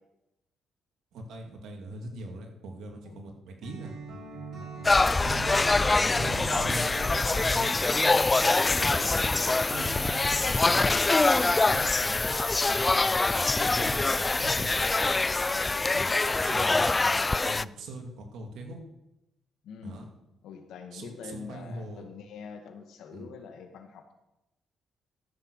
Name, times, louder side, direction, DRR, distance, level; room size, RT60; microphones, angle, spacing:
voice 1, 1.1-3.9 5.2-7.8 10.5-12.4 12.7-14.9 15.9-16.1 16.4-18.8 19.8-20.1 20.9-22.0 23.1-23.3, right 1 dB, 75° right, 2 dB, 2.5 m, -41 dB
Acoustic guitar, 3.6-10.8, right 4 dB, 60° right, 5.2 m, -41 dB
voice 2, 4.6-4.9 8.7-9.1 15.5-15.8 19.6-20.0 20.4-24.1, left 6 dB, 80° left, 5 dB, 1.7 m, -45 dB
sound 1, 4.8-17.6, left 3 dB, 25° left, 0.3 m, -24 dB
14.0 x 6.8 x 6.5 m, 0.92 s
supercardioid pair, 65°, 0 cm